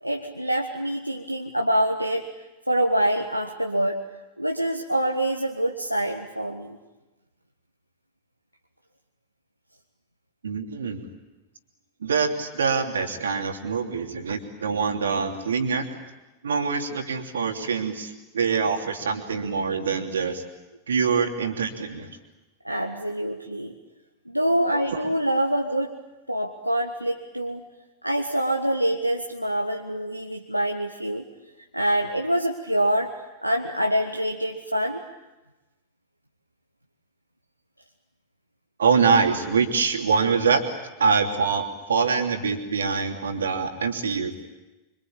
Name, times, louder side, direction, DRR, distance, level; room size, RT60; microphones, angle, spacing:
voice 1, 0.0-2.2 2.7-4.0 4.4-6.8 22.6-23.7 24.3-25.9 26.3-27.6 28.0-31.2 31.7-33.1 33.4-35.0, right 1 dB, 90° right, 2 dB, 1.6 m, -25 dB
voice 2, 10.4-11.1 12.0-15.9 16.4-20.4 20.9-22.2 24.7-25.1 38.8-40.6 41.0-44.3, right 5 dB, 70° right, 4 dB, 3.0 m, -24 dB
26.0 x 25.5 x 8.8 m, 1.1 s
figure-of-eight pair, 90°, 0 cm